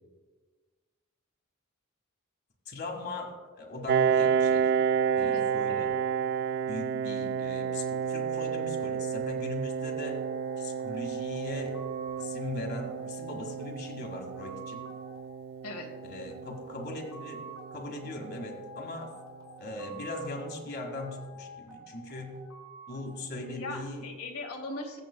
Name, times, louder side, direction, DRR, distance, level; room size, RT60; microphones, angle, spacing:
voice 1, 2.7-4.7 5.1-6.0 6.7-10.2 10.6-11.8 12.2-14.8 16.0-17.4 17.7-19.1 19.6-22.4 22.9-24.1, left 2 dB, 45° left, 2 dB, 1.8 m, -39 dB
Piano, 3.9-19.2, right 7 dB, 50° right, 0.3 m, -31 dB
voice 2, 5.2-5.9 15.6-15.9 23.6-25.0, left 2 dB, 80° left, 0 dB, 1.7 m, -39 dB
sound 1, 9.5-24.0, right 2 dB, 15° right, 3.0 m, -49 dB
22.5 x 8.2 x 2.2 m, 1.4 s
head